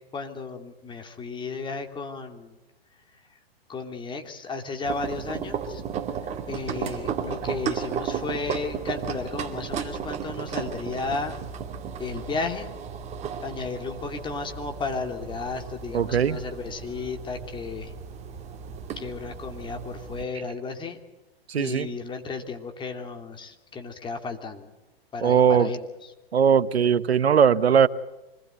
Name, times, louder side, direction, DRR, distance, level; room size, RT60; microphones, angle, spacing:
voice 1, 0.1-2.6 3.1-3.2 3.7-5.8 6.5-11.3 12.0-12.7 13.4-17.9 19.0-21.0 21.6-24.7 25.1-26.1, left 4 dB, 15° left, 5 dB, 2.9 m, -34 dB
sound 1, 4.8-20.2, right 7 dB, 20° right, 2.6 m, -34 dB
voice 2, 15.9-16.4 21.5-21.9 25.2-25.7 26.3-27.9, right 7 dB, 85° right, 16 dB, 1.0 m, -19 dB
26.5 x 20.5 x 8.1 m, 1.0 s
hypercardioid pair, 130°, 31 cm